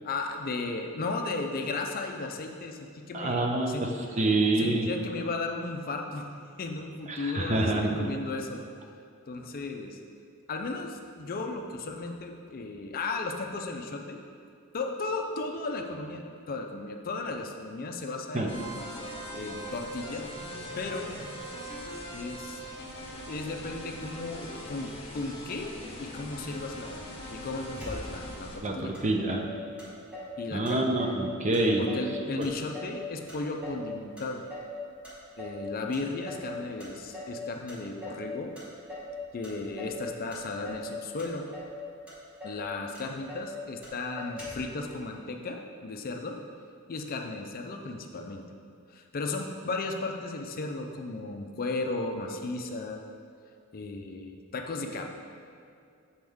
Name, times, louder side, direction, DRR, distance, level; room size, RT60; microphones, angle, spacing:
voice 1, 0.0-3.8 4.6-6.3 6.6-8.6 9.3-10.0 10.5-14.2 14.7-18.7 19.3-20.3 20.8-21.1 22.1-22.6 23.3-25.7 26.0-29.0 30.4-31.0 31.8-34.4 35.4-38.5 39.3-41.4 42.4-46.4 46.9-48.6 48.9-53.0 53.7-55.1, left 3 dB, 40° left, 3 dB, 0.4 m, -35 dB
voice 2, 3.1-3.9 4.2-4.9 7.1-8.1 18.3-18.5 28.6-29.4 30.5-31.8 32.4-32.5, right 2 dB, 35° right, 2 dB, 0.6 m, -26 dB
sound 1, 18.5-28.6, equal, 25° left, 0.8 m, -41 dB
Motor vehicle (road), 27.8-28.4 28.9-29.0 29.3-30.4 30.6-31.2 31.5-32.1 32.4-33.9 34.2-34.8 35.0-35.6 35.9-36.5 36.8-37.4 37.7-38.3 38.6-39.1 39.4-40.0 40.3-40.9 41.2-41.8 42.1-42.2 42.4-42.6 42.9-43.5 43.8-43.9 44.2-44.7, equal, 5° right, 1.6 m, -41 dB
7.8 x 4.3 x 3.6 m, 2.4 s
head